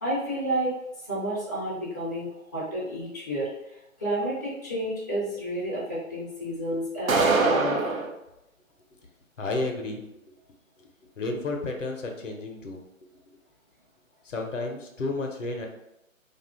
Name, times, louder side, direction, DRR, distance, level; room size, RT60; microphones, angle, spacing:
voice 1, 0.0-7.8, right 1 dB, 15° left, -10 dB, 0.5 m, -31 dB
sound 1, 7.1-8.1, right 3 dB, 75° right, 0.7 m, -22 dB
voice 2, 9.4-10.0 10.8-12.8 14.2-15.7, left 2 dB, 65° left, 2 dB, 0.8 m, -32 dB
2.6 x 2.4 x 3.4 m, 0.88 s
figure-of-eight pair, 140°, 41 cm